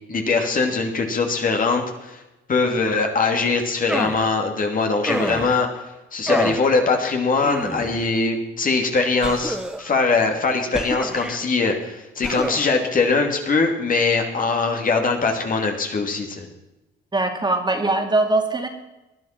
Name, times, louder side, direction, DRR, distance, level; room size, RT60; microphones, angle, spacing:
voice 1, 0.1-2.2 2.5-5.8 6.1-16.5, left 4 dB, 45° left, 3 dB, 2.8 m, -22 dB
sound 1, 3.9-4.3 5.1-5.6 6.3-6.7 7.4-8.0 9.2-9.9 10.7-11.4 12.2-12.7, equal, 5° right, 1.2 m, -28 dB
voice 2, 17.1-18.7, right 2 dB, 20° right, 3 dB, 2.7 m, -21 dB
20.0 x 11.0 x 6.0 m, 0.99 s
cardioid pair, 90°, 20 cm